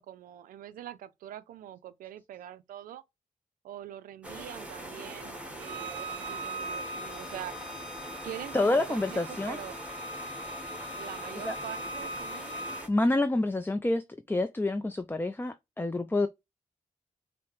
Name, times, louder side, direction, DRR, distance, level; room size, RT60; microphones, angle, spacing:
voice 1, 0.0-3.0 3.6-7.6 8.2-9.8 11.0-12.6, right 11 dB, 90° right, 0.4 m, -44 dB
sound 1, 4.2-12.9, right 1 dB, 10° right, 1.5 m, -42 dB
Bowed string instrument, 5.6-12.8, right 1 dB, 30° right, 1.1 m, -41 dB
voice 2, 8.5-9.6 11.4-11.6 12.9-16.3, left 2 dB, 15° left, 0.5 m, -28 dB
5.5 x 2.1 x 3.1 m
supercardioid pair, 40°, 14 cm